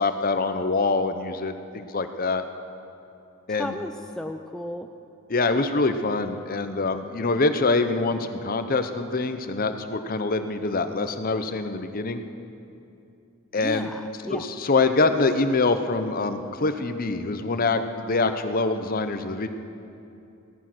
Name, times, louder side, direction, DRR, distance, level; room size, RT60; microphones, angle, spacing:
voice 1, 0.0-2.4 3.5-3.7 5.3-12.2 13.5-13.9 14.3-19.5, left 3 dB, 40° left, 9 dB, 0.8 m, -25 dB
voice 2, 3.5-4.9 13.6-14.4, left 1 dB, 5° left, 4 dB, 0.4 m, -34 dB
17.0 x 13.5 x 6.2 m, 2.7 s
head